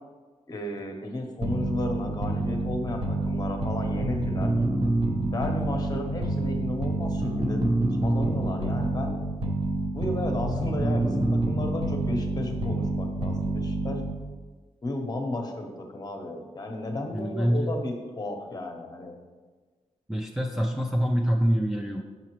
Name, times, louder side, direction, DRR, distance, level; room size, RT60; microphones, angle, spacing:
voice 1, 0.5-4.5 5.3-7.7 8.0-9.2 9.9-14.1 14.8-19.2, left 2 dB, 30° left, 3 dB, 0.8 m, -33 dB
sound 1, 1.4-14.3, right 2 dB, 45° right, 0.8 m, -27 dB
voice 2, 17.1-17.7 20.1-22.0, equal, 5° right, -1 dB, 0.4 m, -25 dB
7.1 x 5.8 x 3.0 m, 1.4 s
wide cardioid pair, 165°, 12 cm